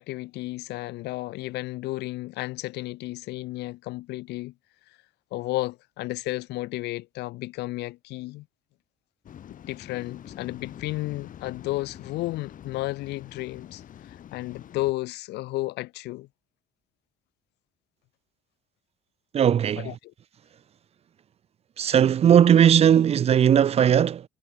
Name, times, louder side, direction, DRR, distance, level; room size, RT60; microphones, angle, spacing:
voice 1, 0.0-4.5 5.3-8.5 9.7-13.8 14.3-16.3 19.8-20.1, left 19 dB, 85° left, 2.0 m, -32 dB
Waves surf, 9.2-14.9, left 10 dB, 50° left, 2.6 m, -45 dB
voice 2, 19.3-19.9 21.8-24.2, right 9 dB, 35° right, 0.4 m, -18 dB
cardioid pair, 110°, 17 cm